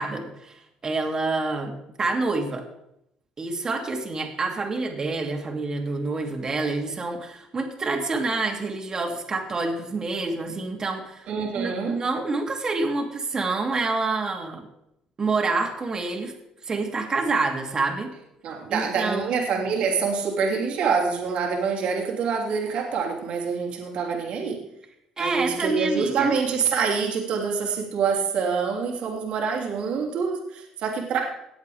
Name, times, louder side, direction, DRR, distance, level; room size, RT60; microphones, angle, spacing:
voice 1, 0.0-2.7 3.4-11.3 11.5-14.7 15.2-16.3 16.6-18.1 18.7-19.3 25.2-26.3, right 3 dB, 35° right, 2 dB, 2.9 m, -27 dB
voice 2, 11.3-11.9 18.4-24.6 25.2-31.2, right 5 dB, 65° right, -1 dB, 3.0 m, -26 dB
19.0 x 8.0 x 3.6 m, 0.79 s
supercardioid pair, 80°, 2 cm